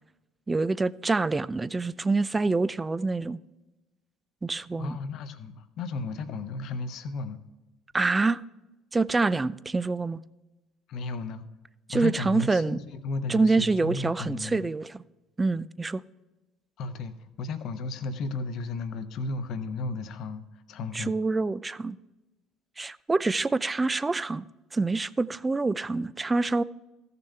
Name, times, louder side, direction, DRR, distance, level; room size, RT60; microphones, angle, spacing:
voice 1, 0.5-3.4 4.4-5.0 7.9-8.4 8.9-10.2 11.9-12.8 13.3-15.0 15.4-16.0 20.9-22.0 22.8-24.4 24.7-26.6, right 3 dB, 20° right, 0.4 m, -26 dB
voice 2, 4.8-7.4 10.9-11.5 11.9-14.7 16.8-21.1, left 3 dB, 60° left, 0.9 m, -34 dB
14.5 x 6.7 x 3.3 m
hypercardioid pair, 60°, 0 cm